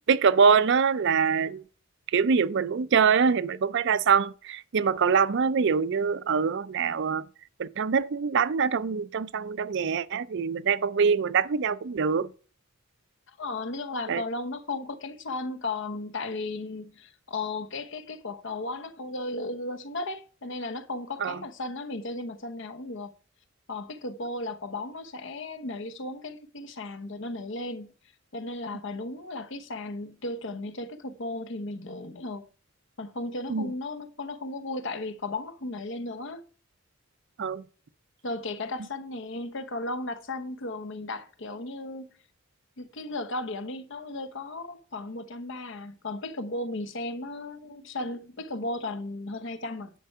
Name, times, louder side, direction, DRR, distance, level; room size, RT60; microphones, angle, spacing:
voice 1, 0.1-1.6 2.1-7.2 7.6-12.3 14.1-14.2 21.2-21.4 33.5-33.7 37.4-37.6, right 6 dB, 60° right, 0.5 m, -24 dB
voice 2, 13.4-23.1 23.7-27.9 28.3-32.4 33.0-36.4 38.2-42.1 42.8-49.9, left 2 dB, 65° left, 0.9 m, -35 dB
10.0 x 4.6 x 6.7 m
head